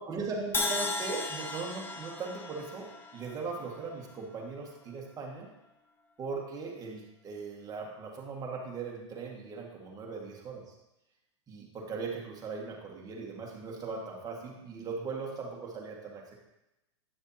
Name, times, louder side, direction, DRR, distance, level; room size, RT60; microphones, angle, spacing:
voice 1, 0.0-5.5 6.2-10.7 11.5-16.3, right 4 dB, 25° right, -1 dB, 1.9 m, -39 dB
Crash cymbal, 0.5-4.6, left 3 dB, 15° left, 0.8 m, -36 dB
10.0 x 6.5 x 2.9 m, 0.92 s
hypercardioid pair, 110°, 15 cm